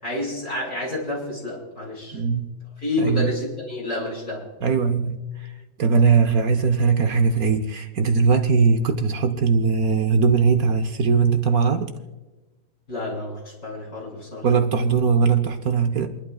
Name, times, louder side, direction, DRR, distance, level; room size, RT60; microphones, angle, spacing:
voice 1, 0.0-2.2 2.8-4.5 12.9-14.5, left 2 dB, 50° left, -4 dB, 6.0 m, -29 dB
voice 2, 2.1-2.5 3.0-3.3 4.6-5.5 5.8-11.9 14.4-16.1, right 5 dB, 65° right, 6 dB, 1.2 m, -20 dB
29.5 x 11.5 x 2.3 m, 1.2 s
omnidirectional pair, 1.8 m